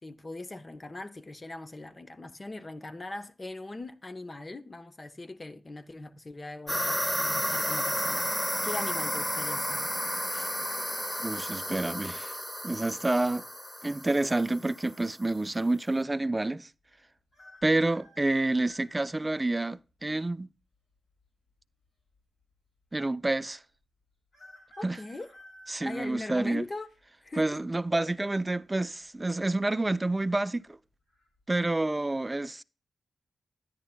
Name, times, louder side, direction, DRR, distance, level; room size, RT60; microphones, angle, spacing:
voice 1, 0.0-9.9 24.8-25.3 25.8-26.9 27.2-27.6, left 2 dB, 40° left, 0.9 m, -41 dB
sound 1, 6.7-14.9, equal, 10° left, 1.2 m, -32 dB
voice 2, 11.2-12.3 12.6-13.5 13.8-16.7 17.6-20.5 22.9-23.6 24.8-25.0 25.7-26.6 27.4-30.8 31.5-32.6, right 2 dB, 25° right, 0.5 m, -28 dB
sound 2, 17.3-19.3 20.0-20.1 21.2-21.8 22.1-22.2 22.4-22.5 24.3-26.9 27.5-27.9 29.0-29.4 29.6-29.7 30.2-30.6 31.1-31.3, equal, 70° left, 6.2 m, -54 dB
13.0 x 10.0 x 2.2 m
cardioid pair, 45°, 0 cm